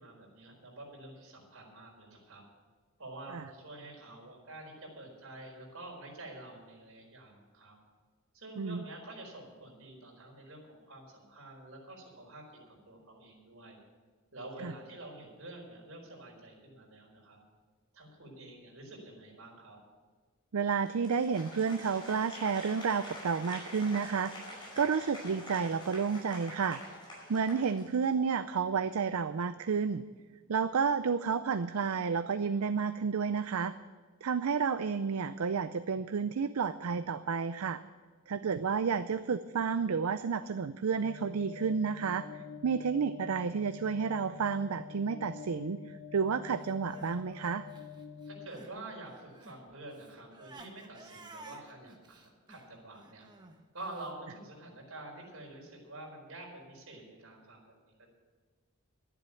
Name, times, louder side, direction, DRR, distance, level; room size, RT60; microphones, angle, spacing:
voice 1, 0.0-2.4 3.0-7.8 8.3-12.6 12.9-13.8 14.3-17.4 17.9-19.8 48.3-53.3 53.7-57.7 58.0-58.1, right 2 dB, 70° right, 0 dB, 4.5 m, -48 dB
voice 2, 20.5-24.5 24.8-26.8 27.3-30.0 30.5-33.7 34.2-37.8 38.3-42.3 42.6-47.7, right 6 dB, 85° right, 12 dB, 0.5 m, -31 dB
Applause, 20.7-28.3, left 1 dB, 20° left, 5.5 m, -46 dB
sound 1, 41.0-48.5, left 7 dB, 60° left, 0.7 m, -47 dB
Crying sobbing, 46.6-48.8 49.1-54.1, right 2 dB, 20° right, 1.2 m, -54 dB
12.0 x 11.0 x 7.1 m, 1.5 s
head